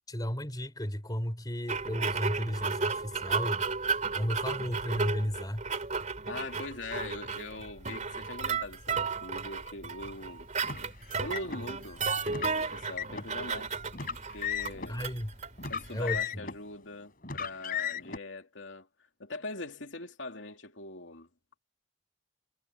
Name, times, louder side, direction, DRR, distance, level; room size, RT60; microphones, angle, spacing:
voice 1, 0.0-3.7 4.1-5.6 14.9-15.3 15.9-16.4, equal, 20° left, 3.3 m, -34 dB
sound 1, 1.7-16.2, right 5 dB, 40° right, 3.1 m, -34 dB
voice 2, 6.3-10.5 11.2-13.7 14.3-15.0 15.7-18.9 19.2-21.3, left 2 dB, 90° left, 2.6 m, -42 dB
Car, 10.6-11.6 12.3-13.3 13.9-14.9 15.6-16.7 17.2-18.2, left 7 dB, 50° left, 4.4 m, -36 dB
head